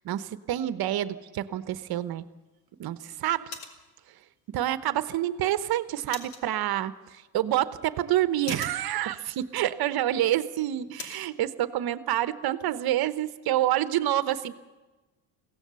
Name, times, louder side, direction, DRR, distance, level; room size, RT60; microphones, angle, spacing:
voice 1, 0.0-2.2 2.8-3.6 4.5-14.5, right 13 dB, 50° right, 13 dB, 1.1 m, -28 dB
sound 1, 1.9-11.3, left 5 dB, 80° left, 2.8 m, -48 dB
22.5 x 16.5 x 6.9 m, 1.2 s
supercardioid pair, 105°, 47 cm